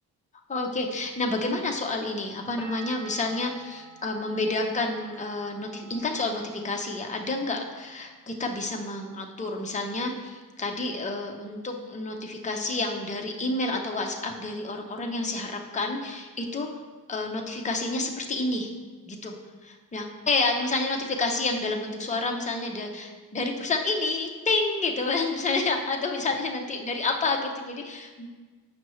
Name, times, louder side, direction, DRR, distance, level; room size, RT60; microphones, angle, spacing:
voice 1, 0.5-16.7 17.1-18.7 19.1-19.3 19.6-28.3, left 3 dB, 20° left, 2 dB, 0.6 m, -29 dB
sound 1, 2.6-8.2 8.5-9.3, right 5 dB, 5° right, 0.9 m, -48 dB
7.4 x 5.5 x 3.1 m, 1.4 s
wide cardioid pair, 130°, 40 cm